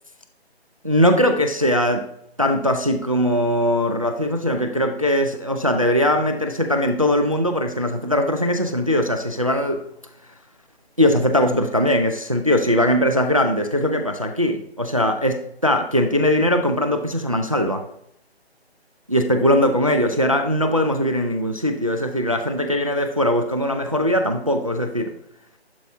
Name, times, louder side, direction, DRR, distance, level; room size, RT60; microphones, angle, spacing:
voice 1, 0.8-2.1 2.4-9.8 11.0-17.8 19.1-25.1, equal, 35° right, 6 dB, 0.4 m, -20 dB
11.0 x 4.5 x 2.7 m, 0.72 s
hypercardioid pair, 170°, 33 cm